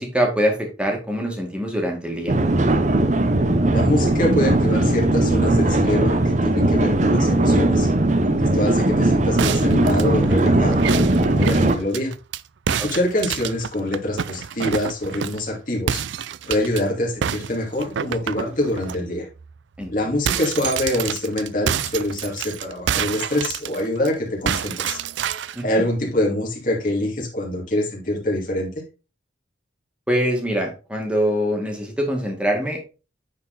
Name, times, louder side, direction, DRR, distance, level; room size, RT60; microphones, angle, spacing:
voice 1, 0.0-2.4 12.8-12.9 19.8-19.9 25.5-25.6 30.1-32.9, equal, 5° right, 1 dB, 2.0 m, -23 dB
sound 1, 2.3-11.7, right 2 dB, 40° right, 0.8 m, -19 dB
voice 2, 3.7-7.9 8.4-12.1 12.7-16.0 16.5-19.3 19.9-25.0 25.6-28.7, left 1 dB, 45° left, -2 dB, 2.9 m, -25 dB
sound 2, 9.4-12.4 12.7-15.5 15.9-16.8 17.2-19.0 19.4-19.5 19.8-24.1 24.5-25.6, right 8 dB, 80° right, 0.4 m, -28 dB
9.6 x 4.4 x 4.1 m, 0.32 s
head